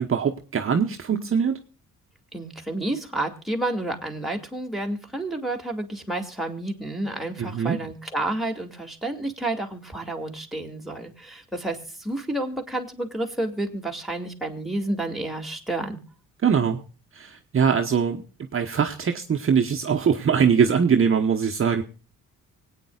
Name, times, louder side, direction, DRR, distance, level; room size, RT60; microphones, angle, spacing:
voice 1, 0.0-1.6 7.4-7.8 16.4-16.8 17.1-21.8, right 6 dB, 40° right, 3 dB, 1.1 m, -22 dB
voice 2, 2.3-16.0, right 2 dB, ahead, 1 dB, 2.5 m, -30 dB
25.0 x 9.1 x 2.4 m, 0.35 s
cardioid pair, 75°, 32 cm